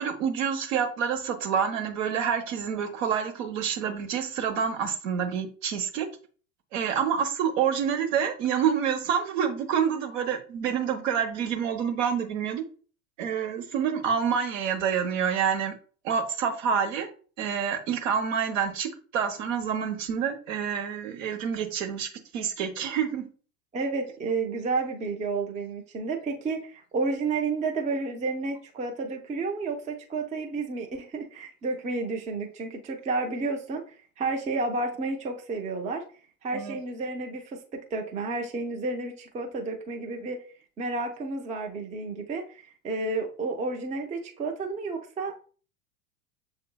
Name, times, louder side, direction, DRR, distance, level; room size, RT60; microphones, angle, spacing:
voice 1, 0.0-6.1 6.7-12.6 13.2-15.7 16.0-17.1 17.4-23.3 36.5-36.8, right 7 dB, 60° right, 5 dB, 1.0 m, -27 dB
voice 2, 23.7-33.8 34.2-36.0 36.4-40.4 40.8-45.3, right 3 dB, 15° right, 2 dB, 0.6 m, -31 dB
6.8 x 2.7 x 2.3 m, 0.40 s
figure-of-eight pair, 90°, 45 cm